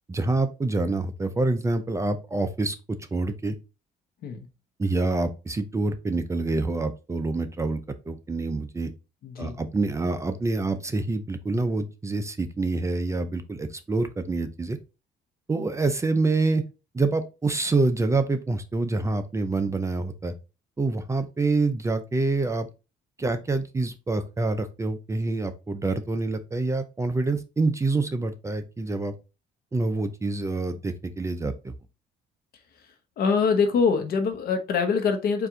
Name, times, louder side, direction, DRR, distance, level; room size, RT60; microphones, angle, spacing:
voice 1, 0.1-3.6 4.8-8.9 9.4-14.8 15.5-16.6 16.9-20.3 20.8-22.7 23.2-29.1 29.7-31.7, right 3 dB, 15° right, 0.5 m, -26 dB
voice 2, 9.2-9.6 33.2-35.5, left 5 dB, 65° left, 1.0 m, -24 dB
4.6 x 2.6 x 3.7 m
cardioid pair, 110°, 17 cm